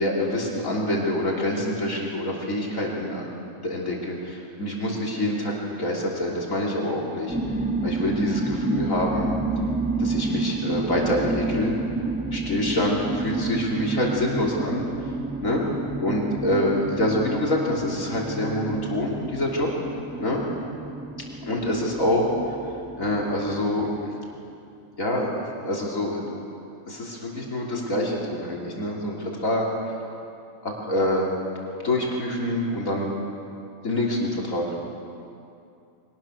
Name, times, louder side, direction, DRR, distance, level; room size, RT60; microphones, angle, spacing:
voice 1, 0.0-3.3 3.6-5.5 5.8-7.4 7.8-9.3 10.0-11.8 12.3-14.9 15.4-15.6 16.0-19.7 20.2-20.4 21.4-22.4 23.0-23.9 25.0-25.3 25.6-26.2 26.9-29.7 30.6-31.3 31.8-33.1 33.8-34.8, left 1 dB, 80° left, -3 dB, 3.7 m, -26 dB
sound 1, 7.3-23.9, right 2 dB, 10° right, 0.7 m, -30 dB
23.0 x 18.5 x 6.4 m, 2.6 s
omnidirectional pair, 1.4 m